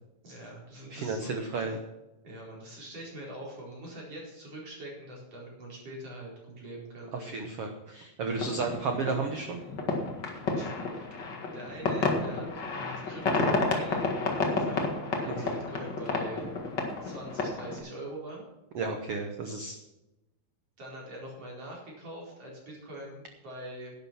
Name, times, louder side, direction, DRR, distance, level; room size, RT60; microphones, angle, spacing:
voice 1, 0.2-1.7 2.2-7.6 10.5-11.2 11.5-14.9 15.2-16.5 17.0-18.4 20.8-23.9, right 1 dB, 40° right, -4 dB, 5.3 m, -43 dB
voice 2, 0.9-1.8 7.2-9.6 15.3-15.5 18.7-19.8, right 4 dB, 80° right, 5 dB, 1.3 m, -33 dB
sound 1, 8.3-17.8, left 3 dB, 40° left, 1.8 m, -31 dB
11.5 x 9.8 x 5.9 m, 0.98 s
omnidirectional pair, 4.3 m